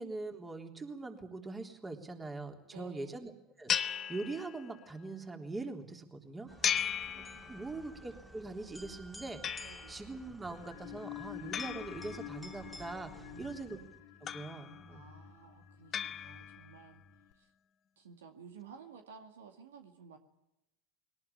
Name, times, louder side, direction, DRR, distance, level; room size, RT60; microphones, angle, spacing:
voice 1, 0.0-3.3 3.6-6.5 7.5-13.8 14.3-15.1, right 3 dB, 15° right, 4 dB, 3.6 m, -42 dB
voice 2, 2.7-3.2 6.5-7.9 9.6-10.1 13.2-13.8 14.9-17.0 17.3-17.5 18.0-20.2, right 5 dB, 70° right, 6 dB, 2.1 m, -55 dB
sound 1, 3.7-4.9 6.6-7.9 9.4-10.1 11.5-12.7 14.3-15.0 15.9-16.8, left 8 dB, 35° left, 1.2 m, -37 dB
sound 2, 6.5-14.0, equal, ahead, 2.6 m, -53 dB
sound 3, 10.4-17.3, left 12 dB, 60° left, 2.0 m, -50 dB
21.5 x 19.0 x 8.6 m, 0.89 s
figure-of-eight pair, 75°, 0 cm